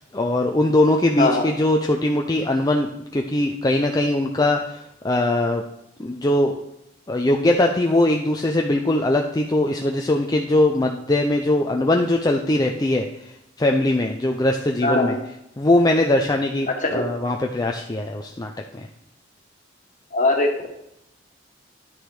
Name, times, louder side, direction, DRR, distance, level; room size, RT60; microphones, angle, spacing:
voice 1, 0.0-5.6 6.0-6.5 7.1-13.3 13.6-18.9, left 1 dB, 20° left, 2 dB, 0.6 m, -21 dB
voice 2, 14.8-15.2 16.8-17.0 20.1-20.7, left 2 dB, 40° left, 2 dB, 1.7 m, -20 dB
10.5 x 6.5 x 4.8 m, 0.81 s
head